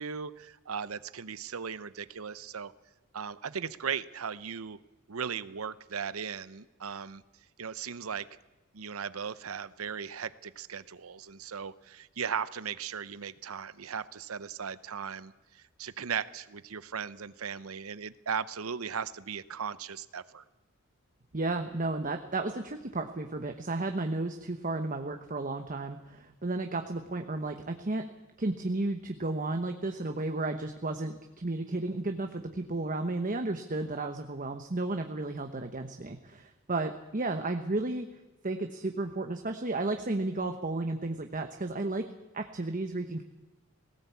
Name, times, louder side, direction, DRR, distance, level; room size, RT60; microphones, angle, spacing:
voice 1, 0.0-2.7 3.1-4.8 5.1-7.2 7.6-8.3 8.7-20.4, right 7 dB, 85° right, 16 dB, 0.8 m, -37 dB
voice 2, 21.3-28.0 28.4-38.1 38.4-42.0 42.3-43.2, right 2 dB, 40° right, 6 dB, 1.0 m, -33 dB
18.0 x 17.5 x 8.3 m, 1.1 s
head